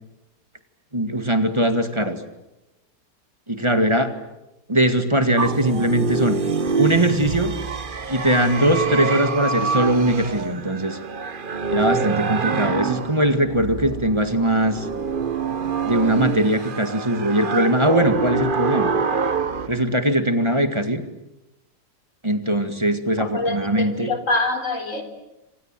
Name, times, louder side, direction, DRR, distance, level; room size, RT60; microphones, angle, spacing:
voice 1, 0.9-2.2 3.5-4.1 4.7-6.4 6.8-7.5 8.1-11.0 11.7-14.9 15.8-18.9 19.7-21.0 22.2-24.1, right 1 dB, 15° right, 8 dB, 2.0 m, -20 dB
sound 1, 5.4-19.7, right 5 dB, 35° right, 1.0 m, -25 dB
voice 2, 23.2-25.0, left 2 dB, 45° left, 6 dB, 4.3 m, -25 dB
27.5 x 27.0 x 7.6 m, 0.96 s
omnidirectional pair, 1.8 m